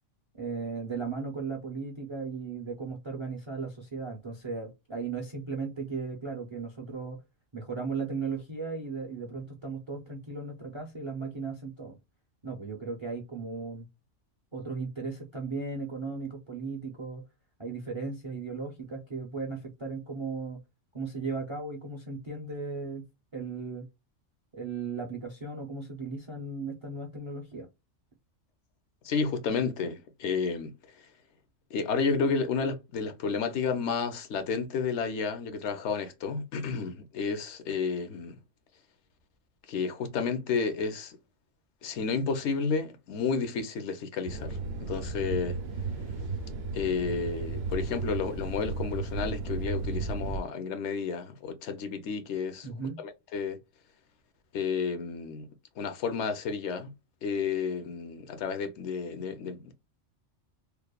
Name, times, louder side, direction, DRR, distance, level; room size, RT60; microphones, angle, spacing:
voice 1, 0.3-7.2 7.5-12.0 12.4-13.9 14.5-17.2 17.6-20.6 20.9-23.9 24.5-27.7 52.6-53.0, right 4 dB, 40° right, 0.4 m, -36 dB
voice 2, 29.0-30.7 31.7-38.4 39.7-41.2 41.8-45.6 46.7-52.7 53.0-53.6 54.5-55.5 55.8-56.9 57.2-59.7, left 5 dB, 70° left, 0.8 m, -31 dB
sound 1, 44.2-50.4, right 3 dB, 65° right, 0.7 m, -34 dB
3.0 x 2.0 x 2.2 m
omnidirectional pair, 1.3 m